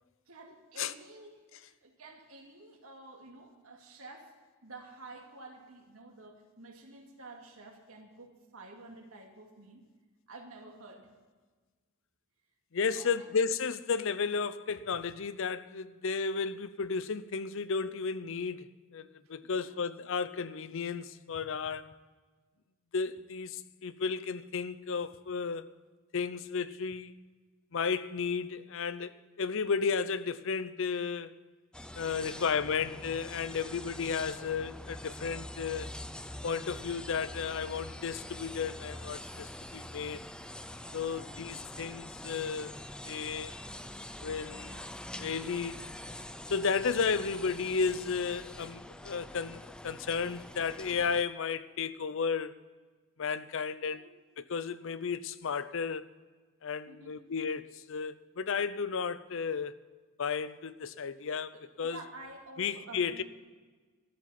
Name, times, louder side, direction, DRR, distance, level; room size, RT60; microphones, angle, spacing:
voice 1, 0.3-4.4 4.6-9.8 10.3-11.1 12.9-13.3 19.4-19.9 32.1-33.0 40.9-41.3 53.9-54.1 56.9-57.3 61.1-61.2 61.5-63.2, right 2 dB, 85° right, 2.5 m, -51 dB
voice 2, 12.7-22.0 22.9-25.7 26.1-27.1 27.7-31.3 32.0-35.9 36.4-40.2 40.9-42.7 43.1-43.5 44.2-44.8 45.2-45.8 46.5-52.6 53.2-54.1 54.4-56.1 56.6-59.7 60.2-62.0 62.6-63.2, left 5 dB, 65° left, 0.6 m, -33 dB
sound 1, 31.7-51.2, left 1 dB, 5° left, 0.4 m, -45 dB
13.5 x 7.5 x 9.2 m
head